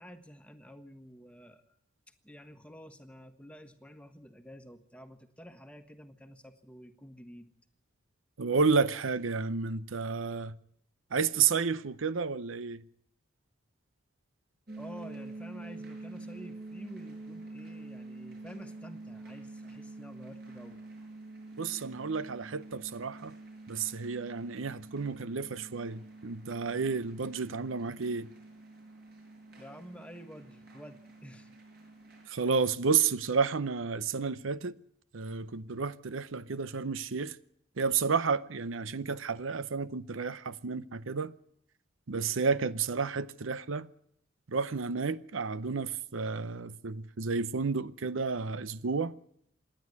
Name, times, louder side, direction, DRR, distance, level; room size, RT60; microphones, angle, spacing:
voice 1, 0.0-1.6 2.2-7.5 14.8-20.8 29.6-31.5, equal, 5° left, 1.3 m, -50 dB
voice 2, 8.4-10.6 11.1-12.8 21.6-23.3 23.7-28.3 32.3-34.7 35.1-37.4 37.8-41.3 42.1-43.9 44.5-49.2, right 5 dB, 80° right, 0.7 m, -31 dB
sound 1, 14.7-32.3, right 2 dB, 50° right, 7.1 m, -47 dB
27.0 x 10.5 x 9.5 m
head